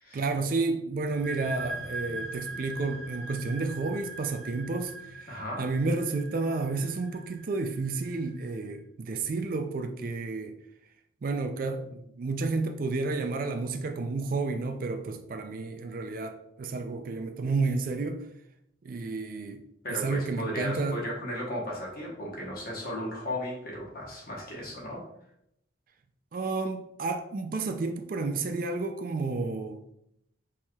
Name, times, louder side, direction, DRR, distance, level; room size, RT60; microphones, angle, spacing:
voice 1, 0.1-10.6 11.2-18.3 18.8-21.0 26.3-29.8, right 3 dB, 45° right, 0.3 m, -31 dB
sound 1, 1.0-8.5, right 2 dB, 5° right, 1.0 m, -41 dB
voice 2, 5.3-5.6 19.8-25.0, left 1 dB, 50° left, 1.0 m, -35 dB
4.4 x 3.1 x 2.3 m
head